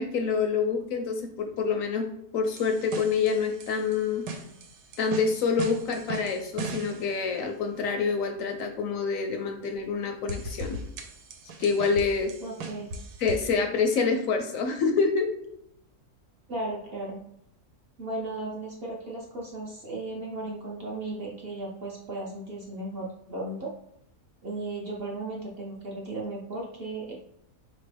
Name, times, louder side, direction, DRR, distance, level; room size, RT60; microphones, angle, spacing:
voice 1, 0.0-2.1 2.3-4.3 5.0-10.8 11.6-12.3 13.2-15.3, left 5 dB, 70° left, 4 dB, 0.9 m, -27 dB
sound 1, 2.5-7.2 9.8-9.9 10.3-13.5, right 2 dB, 90° right, 1.2 m, -39 dB
voice 2, 12.4-12.9 16.5-17.2 18.0-23.7 24.4-27.1, right 2 dB, 50° right, -3 dB, 0.8 m, -35 dB
4.6 x 3.0 x 3.3 m, 0.77 s
omnidirectional pair, 1.6 m